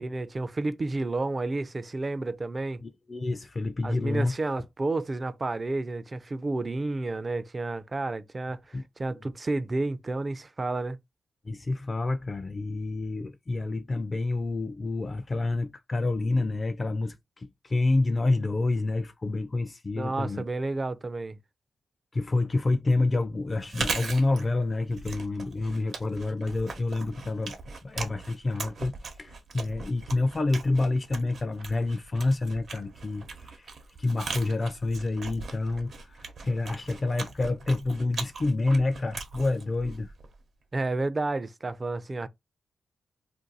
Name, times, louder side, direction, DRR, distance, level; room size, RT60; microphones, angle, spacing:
voice 1, 0.0-2.8 3.8-11.0 20.0-21.4 40.7-42.3, right 2 dB, 35° right, 0.4 m, -31 dB
voice 2, 2.8-4.3 8.7-8.8 11.4-20.4 22.1-33.7 34.0-40.1, left 2 dB, 35° left, 0.3 m, -28 dB
Chewing mastication, 23.5-40.4, right 4 dB, 65° right, 0.8 m, -39 dB
2.5 x 2.3 x 3.9 m
cardioid pair, 70°, 0 cm